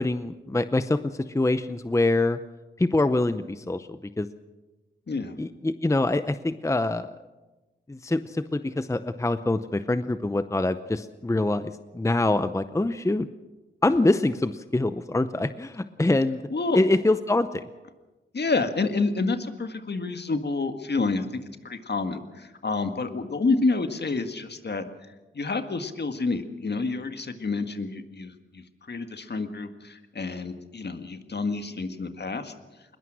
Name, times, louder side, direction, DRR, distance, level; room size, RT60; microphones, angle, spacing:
voice 1, 0.0-2.4 2.8-4.3 5.4-7.1 7.9-13.3 13.8-16.4 16.7-17.6, left 2 dB, 15° left, 12 dB, 0.7 m, -25 dB
voice 2, 5.1-5.4 16.5-16.8 18.3-24.8 25.3-32.5, left 3 dB, 55° left, 8 dB, 1.7 m, -29 dB
21.0 x 20.0 x 6.3 m, 1.2 s
cardioid pair, 65°, 21 cm